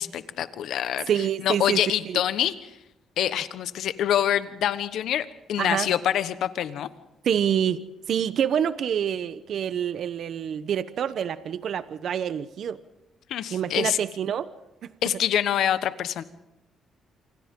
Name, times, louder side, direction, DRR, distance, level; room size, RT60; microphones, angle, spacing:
voice 1, 0.0-1.1 1.4-2.7 3.2-6.9 13.3-14.0 15.0-16.2, left 10 dB, 75° left, 13 dB, 1.2 m, -26 dB
voice 2, 1.1-2.2 5.6-5.9 7.2-12.8 13.5-14.5, right 8 dB, 65° right, 13 dB, 0.9 m, -27 dB
28.0 x 25.0 x 3.8 m, 0.94 s
cardioid pair, 90°, 0 cm